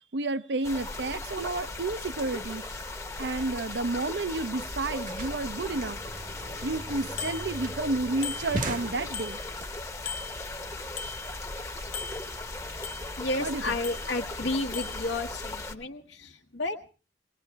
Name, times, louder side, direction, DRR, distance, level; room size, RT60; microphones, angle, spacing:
voice 1, 0.1-2.6 3.2-6.0 6.6-9.4 13.4-13.8, right 2 dB, 70° right, 0.7 m, -31 dB
sound 1, 0.6-15.7, left 2 dB, 15° left, 0.9 m, -38 dB
sound 2, 5.0-9.6, right 2 dB, 45° right, 1.0 m, -39 dB
Bicycle bell, 7.2-7.9 8.2-9.7 10.1-11.6 11.9-13.4 13.8-14.4 14.7-15.1, left 6 dB, 50° left, 0.8 m, -40 dB
voice 2, 13.2-16.9, left 2 dB, 75° left, 1.2 m, -32 dB
19.5 x 19.5 x 3.4 m
head